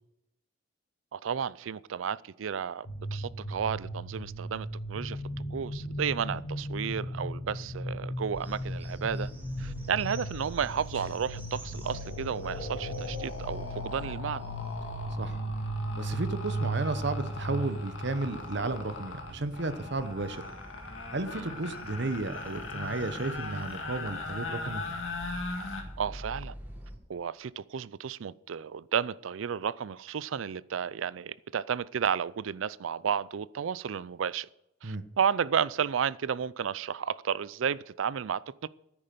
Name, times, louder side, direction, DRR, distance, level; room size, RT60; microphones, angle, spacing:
voice 1, 1.1-5.2 5.5-9.3 9.6-14.5 21.3-21.5 26.0-26.5 27.1-34.5 34.8-38.7, right 7 dB, 75° right, 0.4 m, -32 dB
sound 1, 2.8-18.8, right 1 dB, 45° left, 1.9 m, -36 dB
sound 2, 8.3-27.0, equal, 10° right, 1.9 m, -47 dB
sound 3, 10.9-11.1 11.4-25.8, left 3 dB, 80° left, 1.9 m, -40 dB
voice 2, 15.9-20.4 21.1-24.8 34.8-35.0, right 2 dB, 60° right, 0.9 m, -33 dB
9.8 x 9.0 x 6.8 m
head